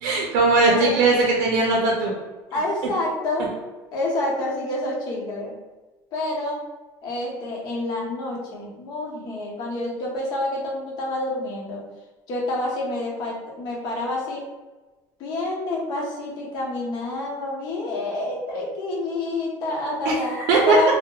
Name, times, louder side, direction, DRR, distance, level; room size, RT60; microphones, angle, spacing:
voice 1, 0.0-2.1 20.1-20.8, right 3 dB, 85° right, -2 dB, 0.4 m, -19 dB
voice 2, 0.7-1.0 2.5-3.5 3.9-5.5 6.1-6.6 7.0-11.8 12.3-14.4 15.2-20.4 20.7-20.9, left 1 dB, 55° left, -3 dB, 0.7 m, -28 dB
2.7 x 2.0 x 2.2 m, 1.2 s
cardioid pair, 155°, 8 cm